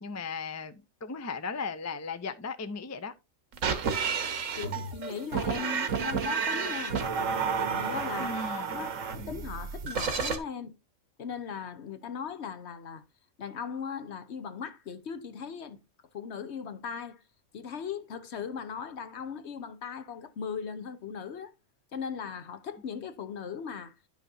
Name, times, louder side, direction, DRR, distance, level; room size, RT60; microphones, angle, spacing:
voice 1, 0.0-3.1 8.2-8.8, left 4 dB, 20° left, 0.4 m, -36 dB
sound 1, 3.5-10.4, right 5 dB, 80° right, 1.5 m, -31 dB
voice 2, 4.6-7.0 7.6-8.4 8.7-10.7 11.2-13.0 13.4-15.8 16.1-17.2 17.5-21.5 21.9-23.9, left 6 dB, 60° left, 1.0 m, -38 dB
11.0 x 6.2 x 2.7 m
omnidirectional pair, 1.3 m